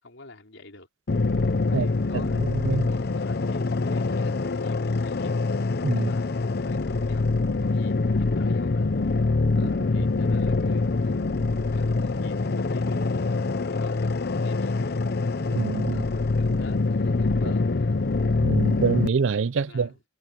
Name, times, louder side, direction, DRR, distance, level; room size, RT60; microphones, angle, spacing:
voice 1, 0.0-0.9 1.7-2.4 2.7-5.4 5.9-8.9 9.5-11.2 11.6-13.0 13.8-15.0 15.8-18.0 19.6-20.0, left 2 dB, 75° left, 4.4 m, -47 dB
sound 1, 1.1-19.1, left 3 dB, 55° left, 0.7 m, -25 dB
voice 2, 2.4-2.8 5.8-6.1 9.6-9.7 15.5-16.0 17.4-17.5 18.4-19.9, right 5 dB, 75° right, 0.5 m, -25 dB
head